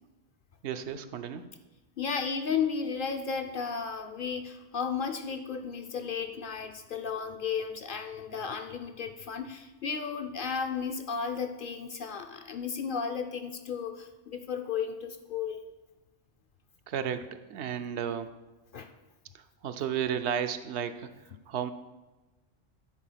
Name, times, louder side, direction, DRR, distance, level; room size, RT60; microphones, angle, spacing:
voice 1, 0.6-1.5 16.9-18.3 19.3-21.7, right 8 dB, 70° right, 9 dB, 0.8 m, -33 dB
voice 2, 2.0-15.6 18.7-18.9, left 6 dB, 55° left, 5 dB, 0.6 m, -34 dB
9.7 x 4.3 x 5.6 m, 1.1 s
omnidirectional pair, 1.2 m